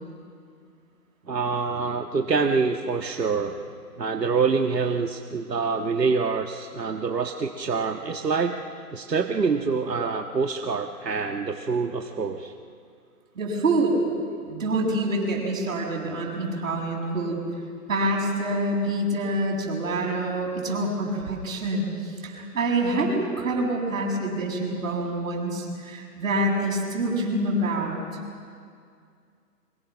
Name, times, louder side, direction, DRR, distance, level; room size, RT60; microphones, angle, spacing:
voice 1, 1.3-3.5 4.0-8.6 8.9-12.5, right 5 dB, 85° right, 4 dB, 1.7 m, -26 dB
voice 2, 13.3-14.0 14.5-17.4 17.9-28.2, right 1 dB, 55° right, 0 dB, 7.5 m, -26 dB
26.5 x 24.0 x 6.2 m, 2.3 s
hypercardioid pair, 160°, 48 cm